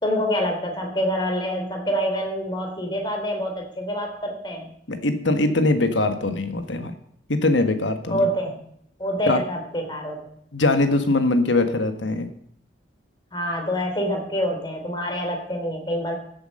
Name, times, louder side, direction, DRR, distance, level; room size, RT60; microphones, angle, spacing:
voice 1, 0.0-4.7 8.1-8.6 9.0-10.2 13.3-16.2, equal, 25° left, 3 dB, 3.0 m, -26 dB
voice 2, 4.9-6.9 7.3-8.2 9.3-9.4 10.5-12.3, left 2 dB, 80° left, 8 dB, 1.5 m, -21 dB
14.0 x 8.1 x 5.4 m, 0.68 s
head